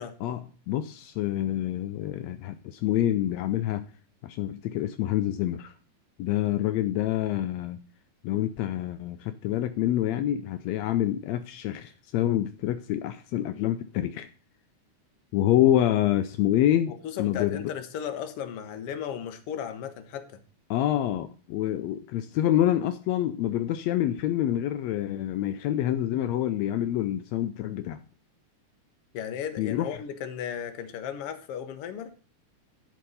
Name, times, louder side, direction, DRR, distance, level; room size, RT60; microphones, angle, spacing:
voice 1, 0.2-3.9 4.2-5.7 6.2-7.8 8.2-14.3 15.3-16.9 17.2-17.7 20.7-28.0 29.6-30.0, left 12 dB, 80° left, 1.5 m, -27 dB
voice 2, 16.9-20.4 29.1-32.1, left 8 dB, 60° left, 1.7 m, -35 dB
12.0 x 4.6 x 5.4 m
omnidirectional pair, 3.6 m